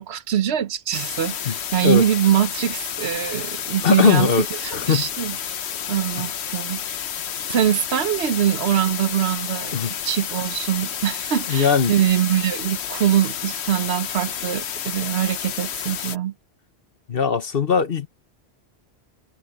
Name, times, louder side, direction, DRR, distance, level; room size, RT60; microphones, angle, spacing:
voice 1, 0.0-4.3 4.6-5.4 5.9-6.8 7.5-16.3, right 10 dB, 85° right, 1.1 m, -23 dB
sound 1, 0.9-16.2, left 8 dB, 90° left, 1.1 m, -30 dB
voice 2, 3.8-5.1 6.2-6.3 9.7-9.9 11.5-11.9 17.1-18.1, left 6 dB, 60° left, 1.4 m, -20 dB
omnidirectional pair, 1.1 m